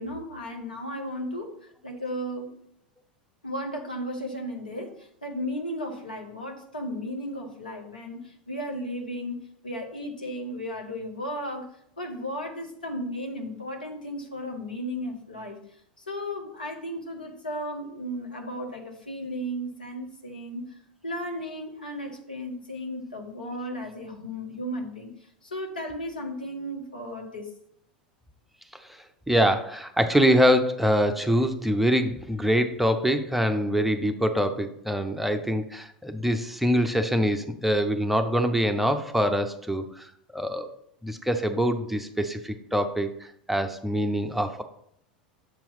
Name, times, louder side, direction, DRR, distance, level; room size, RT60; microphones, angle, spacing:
voice 1, 0.0-1.5 1.8-2.5 3.4-15.6 16.0-20.7 21.0-25.1 25.4-27.5, equal, 80° left, 2 dB, 1.2 m, -35 dB
voice 2, 29.3-40.1 40.3-40.7 41.0-43.1 43.5-44.6, equal, 5° right, 7 dB, 0.5 m, -24 dB
6.9 x 2.9 x 5.4 m, 0.71 s
figure-of-eight pair, 80°, 5 cm